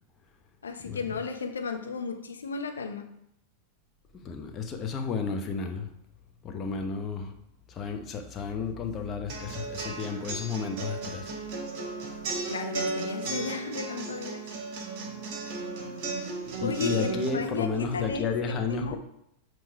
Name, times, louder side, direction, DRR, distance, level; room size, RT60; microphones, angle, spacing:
voice 1, 0.6-3.1 12.5-14.5 16.2-16.3 16.6-19.0, left 4 dB, 70° left, 5 dB, 0.7 m, -34 dB
voice 2, 4.1-5.9 6.4-7.3 7.7-11.3 16.6-19.0, left 5 dB, 30° left, 4 dB, 0.8 m, -32 dB
sound 1, 9.3-17.3, right 3 dB, 45° right, 1.3 m, -35 dB
7.3 x 3.1 x 4.7 m, 0.77 s
figure-of-eight pair, 90°, 0 cm